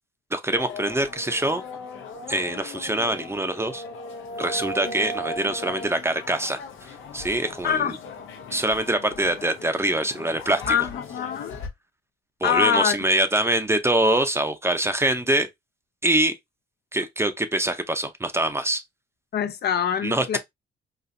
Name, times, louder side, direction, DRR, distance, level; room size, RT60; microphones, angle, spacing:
voice 1, 0.3-1.6 2.3-3.8 4.4-8.0 8.5-10.8 12.4-15.5 16.0-16.3 16.9-18.8 20.0-20.4, right 1 dB, 15° right, 0.6 m, -24 dB
sound 1, 0.6-11.7, left 2 dB, 80° left, 0.8 m, -37 dB
voice 2, 7.6-8.0 10.7-11.6 12.4-13.0 19.3-20.4, left 8 dB, 55° left, 0.5 m, -24 dB
4.1 x 2.4 x 2.6 m
cardioid pair, 90°, 20 cm